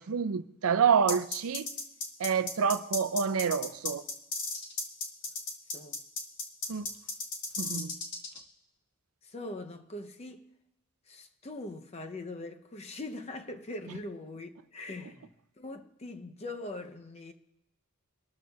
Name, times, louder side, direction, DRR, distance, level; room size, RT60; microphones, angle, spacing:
voice 1, 0.0-1.7 2.2-4.0 6.7-6.9 7.6-8.0, right 6 dB, 75° right, 0.5 m, -28 dB
sound 1, 1.1-8.4, left 3 dB, 55° left, 1.5 m, -35 dB
voice 2, 9.2-10.5 11.1-17.3, left 2 dB, 30° left, 0.6 m, -42 dB
25.0 x 12.5 x 2.3 m
head